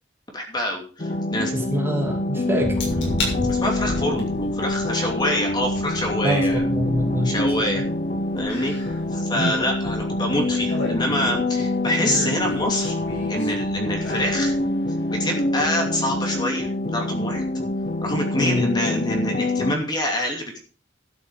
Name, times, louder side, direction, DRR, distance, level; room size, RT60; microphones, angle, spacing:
voice 1, 0.3-1.5 3.5-6.6 7.2-7.8 8.4-8.7 9.1-13.0 13.3-14.5 15.2-17.5 18.0-20.6, left 1 dB, 20° left, 1 dB, 2.7 m, -26 dB
sound 1, 1.0-19.7, left 2 dB, 40° left, 0.8 m, -26 dB
voice 2, 1.5-2.8 6.2-7.4 18.4-18.6, equal, 10° right, 0 dB, 2.6 m, -25 dB
Thunder, 2.6-15.5 15.8-16.4 16.7-18.2, equal, 45° right, 3.1 m, -37 dB
sound 2, 2.8-3.4 3.8-4.2 5.8-5.9 8.5-9.0 9.3-9.6 10.4-11.5 12.0-13.5 14.0-14.5 14.9-15.0, left 1 dB, 70° left, 6.7 m, -31 dB
12.5 x 9.7 x 5.0 m, 0.40 s
head